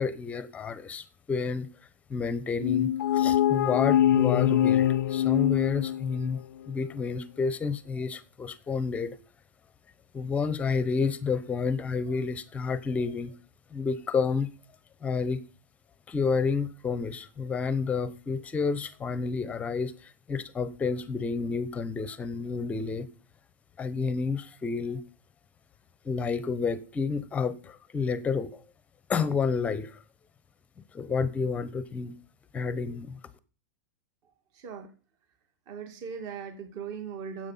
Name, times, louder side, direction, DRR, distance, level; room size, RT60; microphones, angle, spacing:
voice 1, 0.0-1.7 2.1-6.4 6.7-9.2 10.1-13.3 13.7-14.5 15.0-15.4 16.1-23.1 23.8-25.0 26.0-28.6 29.1-30.0 30.9-32.2 32.5-33.2, left 5 dB, 15° left, 0.8 m, -30 dB
sound 1, 2.6-6.4, left 11 dB, 90° left, 0.4 m, -24 dB
voice 2, 34.5-34.9 35.7-37.5, right 6 dB, 35° right, 2.2 m, -39 dB
9.5 x 7.9 x 5.6 m
supercardioid pair, 155°, 10 cm